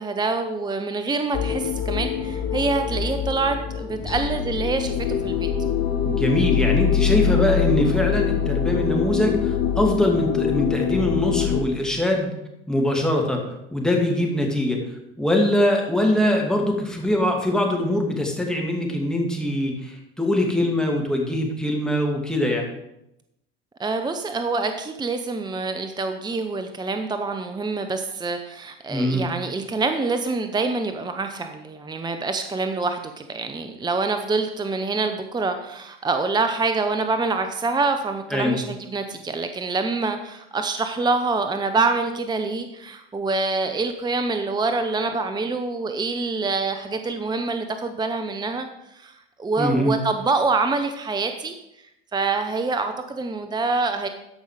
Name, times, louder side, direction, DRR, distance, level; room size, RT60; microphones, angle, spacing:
voice 1, 0.0-5.5 23.8-51.5 52.1-54.1, right 3 dB, 15° right, 7 dB, 0.8 m, -26 dB
sound 1, 1.3-11.6, left 7 dB, 55° left, 1.3 m, -24 dB
voice 2, 6.0-12.3 12.7-13.4 13.7-14.8 15.2-22.7 28.9-29.3 38.3-38.6 49.6-50.0, left 1 dB, ahead, 0 dB, 2.4 m, -22 dB
13.5 x 5.5 x 5.0 m, 0.83 s
hypercardioid pair, 75°, 30 cm